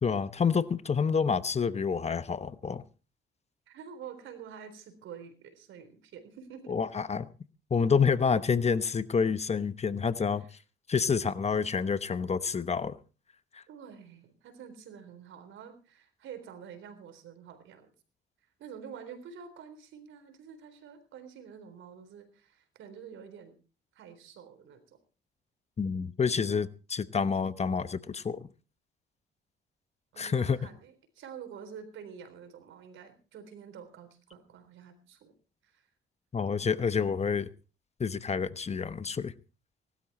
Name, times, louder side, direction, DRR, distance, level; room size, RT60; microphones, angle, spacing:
voice 1, 0.0-2.8 6.7-7.3 7.7-10.4 10.9-13.0 13.5-13.6 25.8-28.5 30.2-30.6 36.3-37.5 38.0-39.3, left 6 dB, 35° left, 14 dB, 1.0 m, -28 dB
voice 2, 3.7-6.8 10.4-10.5 13.7-17.9 18.6-23.6 23.9-25.0 30.1-35.3 35.6-35.9, right 7 dB, 80° right, 10 dB, 3.9 m, -48 dB
18.5 x 12.5 x 4.2 m, 0.35 s
cardioid pair, 90°, 20 cm